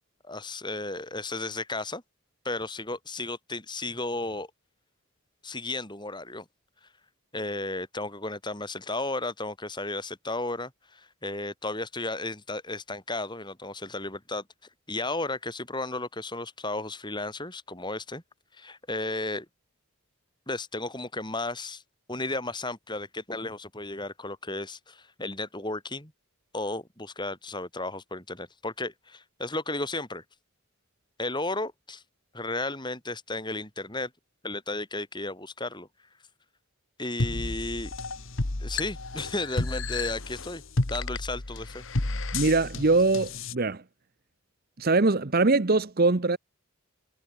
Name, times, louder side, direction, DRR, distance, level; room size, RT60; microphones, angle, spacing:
voice 1, 0.2-2.0 2.4-4.5 5.4-6.4 7.3-14.4 14.9-18.2 18.5-19.5 20.5-21.8 22.1-26.1 26.5-30.2 31.2-32.0 32.3-34.1 34.4-35.9 37.0-37.9 38.6-40.6 40.9-41.8, left 2 dB, 20° left, 6.6 m, -34 dB
sound 1, 37.2-43.5, left 2 dB, 60° left, 1.7 m, -32 dB
voice 2, 42.3-43.8 44.8-46.4, right 3 dB, 45° right, 0.8 m, -22 dB
head